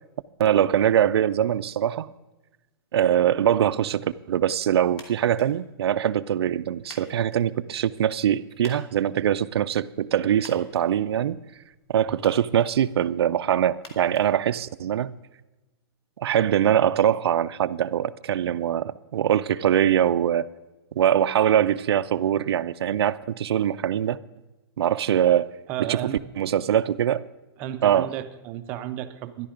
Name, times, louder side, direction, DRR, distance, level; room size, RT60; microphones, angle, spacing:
voice 1, 0.4-2.1 2.9-11.4 11.9-15.1 16.2-20.5 21.0-24.2 24.8-25.5 25.8-26.0 26.4-27.3 27.8-28.1, right 10 dB, 85° right, 0.4 m, -23 dB
sound 1, 4.9-15.1, left 3 dB, 85° left, 2.8 m, -53 dB
voice 2, 25.7-26.2 27.6-29.5, right 12 dB, 15° right, 0.4 m, -33 dB
13.0 x 10.5 x 5.0 m
hypercardioid pair, 180°, 13 cm